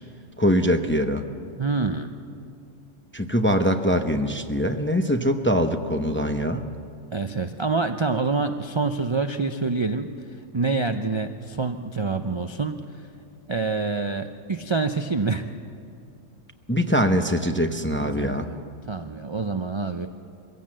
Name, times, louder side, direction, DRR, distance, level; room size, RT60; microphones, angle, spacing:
voice 1, 0.4-1.2 3.1-6.6 16.7-18.4, equal, 10° left, 6 dB, 0.6 m, -23 dB
voice 2, 1.6-2.1 7.1-10.1 10.5-12.8 13.5-15.5 18.0-18.6 18.9-20.1, right 4 dB, 40° right, 7 dB, 0.4 m, -26 dB
23.0 x 16.5 x 7.5 m, 2.4 s
omnidirectional pair, 1.3 m